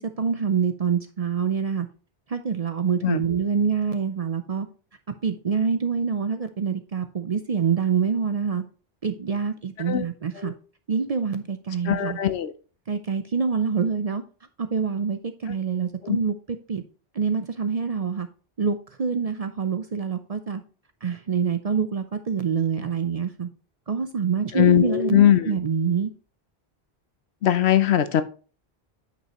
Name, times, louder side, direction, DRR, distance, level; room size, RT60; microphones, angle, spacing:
voice 1, 0.2-1.9 2.3-4.7 5.2-8.6 9.0-10.5 10.9-12.2 12.9-14.2 14.6-16.3 16.7-16.8 17.1-18.3 18.6-20.6 21.0-23.5 23.9-26.1, right 6 dB, 45° right, 9 dB, 0.5 m, -26 dB
voice 2, 11.8-12.5 16.0-16.2 24.5-25.6 27.4-28.2, left 11 dB, 80° left, 12 dB, 1.0 m, -20 dB
9.2 x 5.5 x 2.9 m, 0.37 s
omnidirectional pair, 1.1 m